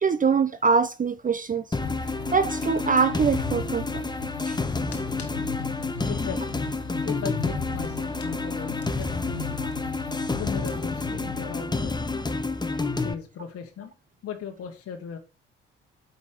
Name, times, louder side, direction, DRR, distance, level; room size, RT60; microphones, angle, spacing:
voice 1, 0.0-1.7 2.3-3.9 4.5-4.6 9.6-9.7, right 5 dB, 25° right, 0.7 m, -23 dB
sound 1, 1.7-13.1, left 3 dB, 15° left, 1.1 m, -29 dB
sound 2, 1.8-12.6, left 9 dB, 85° left, 0.9 m, -39 dB
voice 2, 6.1-6.6 7.0-9.6 10.3-12.0 12.9-13.9 14.2-15.2, left 7 dB, 50° left, 1.3 m, -37 dB
8.4 x 5.4 x 4.9 m
figure-of-eight pair, 40°, 31 cm